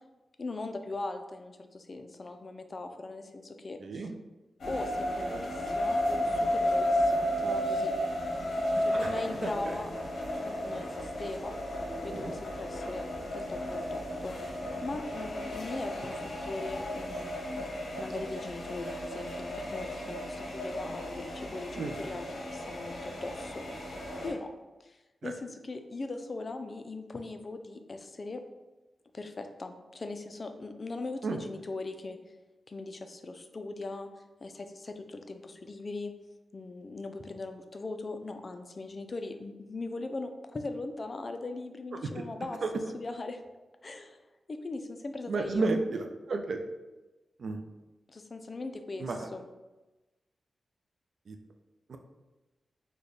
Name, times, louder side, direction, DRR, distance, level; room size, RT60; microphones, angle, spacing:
voice 1, 0.4-4.1 4.7-8.0 8.8-9.9 10.4-11.5 12.0-13.1 13.3-14.4 14.8-16.2 16.4-17.3 18.0-23.5 23.8-24.0 24.2-24.5 24.8-25.0 25.2-28.4 29.1-32.2 32.7-36.1 36.5-42.6 42.9-43.4 43.8-44.2 44.5-45.7 48.1-49.5, left 2 dB, 45° left, 7 dB, 0.3 m, -40 dB
voice 2, 3.8-4.1 9.4-9.8 12.1-12.3 21.8-22.0 25.2-25.3 31.2-31.4 42.1-42.2 42.6-42.7 45.3-46.6 47.4-47.6 49.0-49.3 51.3-51.4 51.9-52.0, right 3 dB, 70° right, 5 dB, 0.3 m, -32 dB
sound 1, 4.6-24.3, left 1 dB, 75° left, 0.7 m, -33 dB
3.2 x 2.1 x 3.8 m, 1.1 s
cardioid pair, 80°, 0 cm